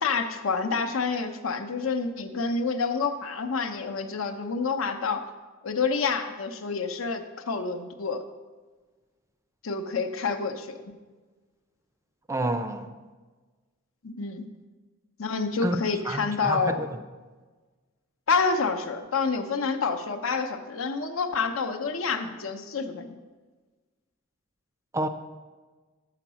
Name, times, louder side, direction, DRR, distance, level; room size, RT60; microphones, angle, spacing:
voice 1, 0.0-5.2 5.6-8.2 9.6-10.8 14.0-14.5 15.2-16.9 18.3-23.2, left 4 dB, 80° left, 6 dB, 0.8 m, -28 dB
voice 2, 12.3-12.9 15.6-15.8 16.0-17.0 24.9-25.1, right 1 dB, 15° right, 9 dB, 0.4 m, -29 dB
7.7 x 5.9 x 6.3 m, 1.3 s
head